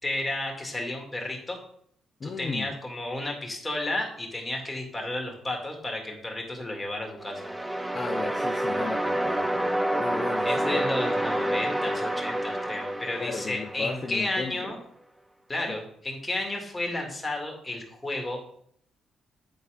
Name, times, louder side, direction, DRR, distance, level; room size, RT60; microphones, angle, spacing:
voice 1, 0.0-1.6 2.2-7.5 10.4-14.8 15.5-18.5, left 1 dB, 15° left, 1 dB, 2.3 m, -32 dB
voice 2, 2.2-2.8 7.9-10.9 13.2-14.6 15.7-15.8, left 4 dB, 40° left, 3 dB, 0.8 m, -35 dB
sound 1, 7.2-14.2, right 1 dB, 10° right, 0.8 m, -28 dB
9.0 x 4.2 x 5.2 m, 0.66 s
cardioid pair, 90°, 0 cm